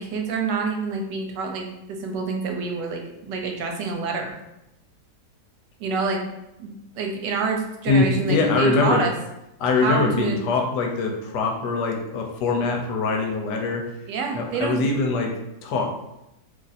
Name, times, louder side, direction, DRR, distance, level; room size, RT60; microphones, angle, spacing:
voice 1, 0.0-4.3 5.8-6.2 6.6-9.1 9.8-10.4 14.1-14.8, right 4 dB, 80° right, 2 dB, 1.2 m, -27 dB
voice 2, 7.9-9.0 9.6-13.8 14.3-15.3 15.6-15.9, left 3 dB, 75° left, 2 dB, 1.2 m, -23 dB
2.9 x 2.5 x 4.0 m, 0.88 s
omnidirectional pair, 1.9 m